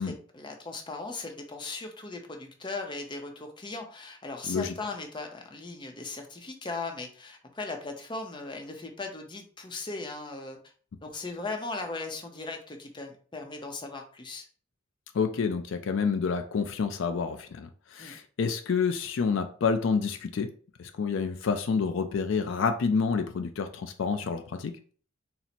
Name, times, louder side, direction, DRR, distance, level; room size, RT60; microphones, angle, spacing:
voice 1, 0.0-10.6 11.0-14.5 18.0-18.2, left 3 dB, 25° left, 0.6 m, -38 dB
voice 2, 15.1-20.5 20.8-24.7, left 5 dB, 65° left, 0.4 m, -28 dB
4.1 x 2.0 x 4.1 m
head